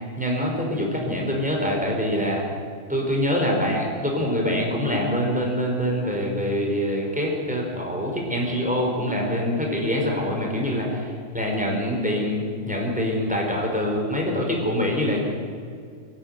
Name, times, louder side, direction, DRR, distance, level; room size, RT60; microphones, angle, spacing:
voice 1, 0.2-2.4 2.9-15.2, equal, 5° right, -1 dB, 4.6 m, -25 dB
24.0 x 11.5 x 9.4 m, 2.2 s
omnidirectional pair, 1.4 m